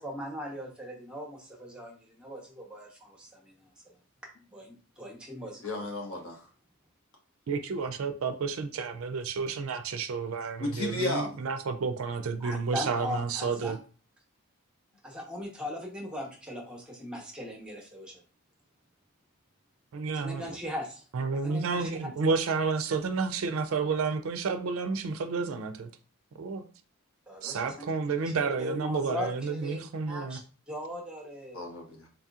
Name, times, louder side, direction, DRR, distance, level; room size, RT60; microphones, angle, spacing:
voice 1, 0.0-3.5 4.5-5.8 12.4-13.8 15.0-18.1 20.1-21.0 21.4-21.9 27.3-27.9 28.6-30.4 30.7-31.6, left 1 dB, 5° right, 0.8 m, -39 dB
voice 2, 5.6-6.4 10.6-11.3 31.5-32.1, left 2 dB, 70° left, 1.0 m, -33 dB
voice 3, 7.5-13.8 19.9-20.6 21.1-25.9 26.4-26.6 27.4-30.4, right 4 dB, 70° right, 0.4 m, -31 dB
3.9 x 2.7 x 2.4 m
head